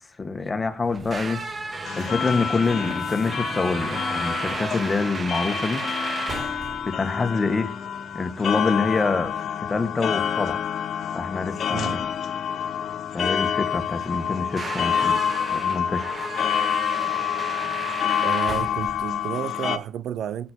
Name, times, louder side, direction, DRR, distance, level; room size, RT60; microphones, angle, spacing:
voice 1, 0.2-6.2 6.9-7.7 8.1-10.6 11.1-12.1 13.1-16.1, left 4 dB, 25° left, 1.9 m, -26 dB
sound 1, 0.8-19.7, right 3 dB, 35° right, 2.2 m, -35 dB
sound 2, 1.8-19.8, left 8 dB, 60° left, 1.1 m, -28 dB
voice 2, 18.2-20.5, right 10 dB, 75° right, 0.8 m, -31 dB
18.0 x 8.8 x 4.6 m
cardioid pair, 90°, 0 cm